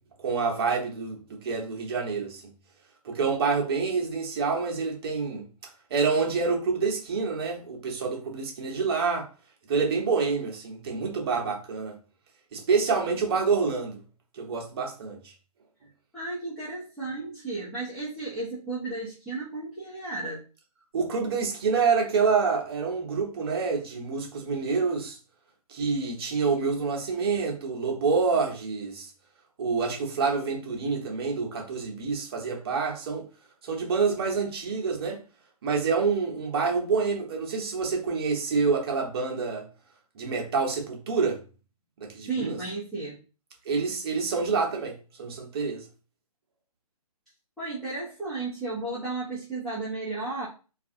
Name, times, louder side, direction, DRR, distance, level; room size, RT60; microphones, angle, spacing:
voice 1, 0.2-2.5 3.0-5.5 5.9-9.3 9.7-12.0 12.5-14.0 14.3-15.3 20.9-25.2 25.7-29.1 29.6-33.3 33.6-35.2 35.6-39.7 40.1-41.4 42.0-42.6 43.6-45.9, right 5 dB, 40° right, 0.8 m, -27 dB
voice 2, 16.1-20.4 42.2-43.2 47.6-50.5, right 3 dB, ahead, 0.5 m, -33 dB
2.4 x 2.3 x 2.7 m
figure-of-eight pair, 140°, 20 cm